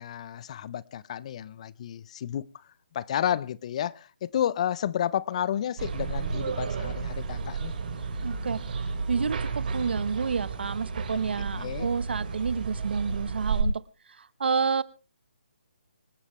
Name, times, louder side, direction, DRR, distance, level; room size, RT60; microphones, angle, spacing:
voice 1, 0.0-2.6 2.9-7.7 11.4-11.9, left 10 dB, 35° left, 0.6 m, -31 dB
sound 1, 5.8-13.6, right 5 dB, 45° right, 4.6 m, -32 dB
voice 2, 8.2-8.6 9.1-13.8 14.2-14.8, right 5 dB, 65° right, 1.1 m, -29 dB
25.5 x 12.5 x 3.2 m
hypercardioid pair, 155°, 6 cm